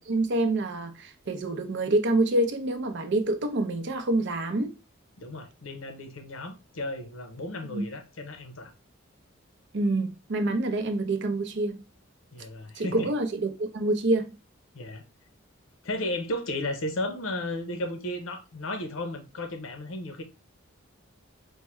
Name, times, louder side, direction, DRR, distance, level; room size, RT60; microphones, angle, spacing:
voice 1, 0.0-4.7 7.6-7.9 9.7-11.8 12.8-14.3, right 2 dB, 60° right, 0.6 m, -27 dB
voice 2, 5.2-8.7 12.3-13.1 14.7-15.0 15.8-20.2, left 1 dB, 75° left, 0.7 m, -34 dB
4.5 x 2.1 x 3.0 m
head